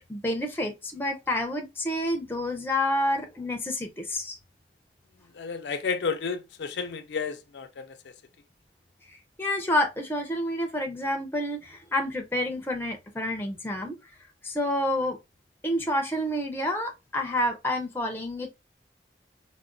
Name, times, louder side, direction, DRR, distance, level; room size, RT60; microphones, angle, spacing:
voice 1, 0.1-4.4 9.4-14.0 14.4-15.2 15.6-18.5, left 1 dB, 10° left, 0.5 m, -28 dB
voice 2, 5.3-8.1, left 5 dB, 80° left, 0.4 m, -32 dB
4.7 x 2.1 x 2.5 m
head